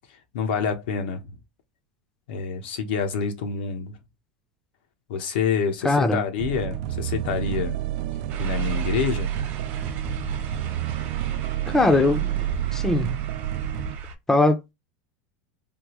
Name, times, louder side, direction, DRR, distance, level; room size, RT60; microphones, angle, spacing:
voice 1, 0.1-1.4 2.3-4.0 5.1-7.8 8.4-9.3, left 6 dB, 80° left, 0.9 m, -27 dB
voice 2, 5.8-6.2 11.7-12.4 12.7-13.2 14.3-14.7, left 2 dB, 10° left, 0.5 m, -21 dB
sound 1, 6.4-14.0, right 13 dB, 60° right, 0.4 m, -29 dB
sound 2, 8.3-14.2, right 4 dB, 45° right, 1.0 m, -37 dB
3.5 x 2.3 x 3.0 m
supercardioid pair, 145°, 5 cm